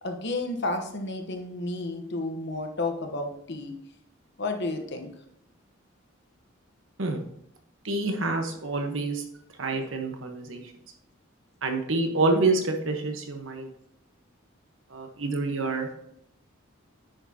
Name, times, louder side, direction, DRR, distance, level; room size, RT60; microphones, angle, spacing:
voice 1, 0.0-3.7 4.4-5.1, left 2 dB, 60° left, 5 dB, 1.1 m, -31 dB
voice 2, 7.8-9.2 9.6-10.6 11.6-13.7 14.9-15.9, right 3 dB, 70° right, 4 dB, 1.2 m, -27 dB
9.7 x 6.4 x 2.9 m, 0.75 s
head